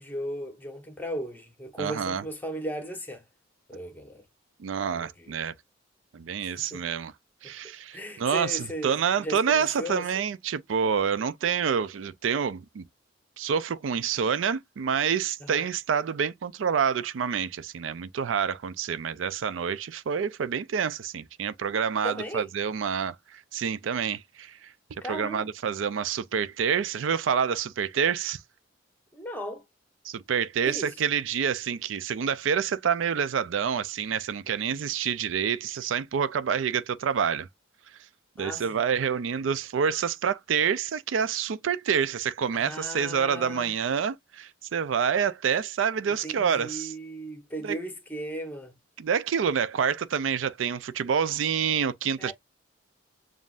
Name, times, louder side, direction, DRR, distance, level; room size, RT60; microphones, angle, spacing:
voice 1, 0.0-3.2 3.7-4.2 4.9-5.3 6.4-6.8 7.4-7.5 7.9-10.1 15.4-15.7 22.0-22.5 25.0-25.5 29.1-29.6 30.7-30.9 38.4-38.8 42.5-43.7 46.2-48.7 52.2-52.3, equal, 10° left, 1.1 m, -36 dB
voice 2, 1.8-2.2 4.6-5.5 6.1-7.1 7.4-12.8 13.4-28.4 30.0-37.5 38.4-46.9 47.6-47.8 49.0-52.3, right 7 dB, 90° right, 0.4 m, -27 dB
7.2 x 2.5 x 2.4 m
head